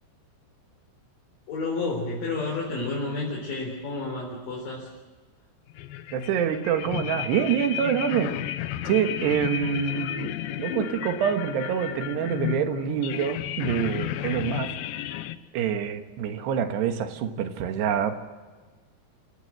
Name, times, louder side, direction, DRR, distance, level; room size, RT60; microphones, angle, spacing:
voice 1, 1.5-4.9, left 3 dB, 50° left, -2 dB, 5.5 m, -30 dB
sound 1, 5.7-15.4, left 12 dB, 80° left, 2.1 m, -33 dB
voice 2, 6.1-8.4 8.9-14.8 15.5-18.2, right 8 dB, 75° right, 7 dB, 3.5 m, -26 dB
28.0 x 15.0 x 7.7 m, 1.4 s
omnidirectional pair, 5.0 m